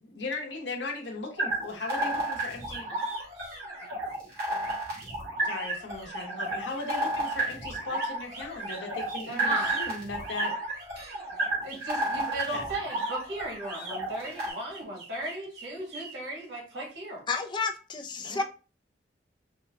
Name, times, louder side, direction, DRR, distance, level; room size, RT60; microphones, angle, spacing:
voice 1, 0.0-3.0 5.4-10.5 12.5-12.7 18.2-18.4, left 3 dB, 85° left, 0.9 m, -37 dB
sound 1, 1.4-14.5, right 2 dB, 60° right, 1.6 m, -32 dB
sound 2, 2.6-11.9 12.7-16.1, right 3 dB, 40° right, 1.6 m, -45 dB
voice 2, 9.3-9.8 11.0-11.2 11.6-17.2, right 1 dB, 85° right, 1.8 m, -36 dB
voice 3, 17.3-18.4, left 4 dB, 25° left, 0.4 m, -31 dB
4.3 x 2.2 x 3.5 m
head